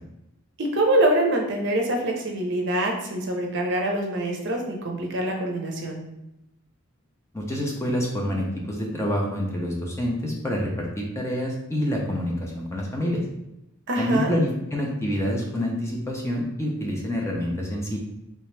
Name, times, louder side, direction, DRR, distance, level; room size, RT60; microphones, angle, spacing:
voice 1, 0.6-6.0 13.9-14.3, right 1 dB, 55° right, 1 dB, 0.6 m, -24 dB
voice 2, 7.3-13.2 14.0-18.0, equal, 15° left, -2 dB, 0.5 m, -27 dB
3.3 x 2.9 x 3.2 m, 0.89 s
head